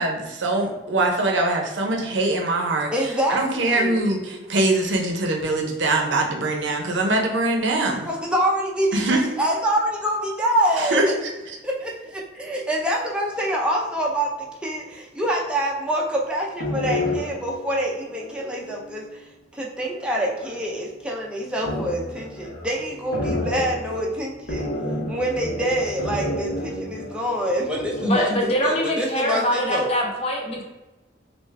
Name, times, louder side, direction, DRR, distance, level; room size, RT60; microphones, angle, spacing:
voice 1, 0.0-8.1 8.9-9.3 10.8-11.1 11.5-11.6, right 2 dB, 75° right, 1 dB, 0.6 m, -23 dB
voice 2, 2.9-3.4 3.7-4.0 8.0-11.1 11.6-14.3 14.6-19.0 19.6-24.7 25.1-29.9, right 1 dB, 5° right, -2 dB, 0.5 m, -26 dB
sound 1, 16.6-19.1 19.9-20.9 21.6-28.2, left 1 dB, 85° left, 1.0 m, -31 dB
voice 3, 28.0-30.6, equal, 35° left, -1 dB, 0.7 m, -23 dB
3.5 x 2.4 x 3.2 m, 1.1 s
head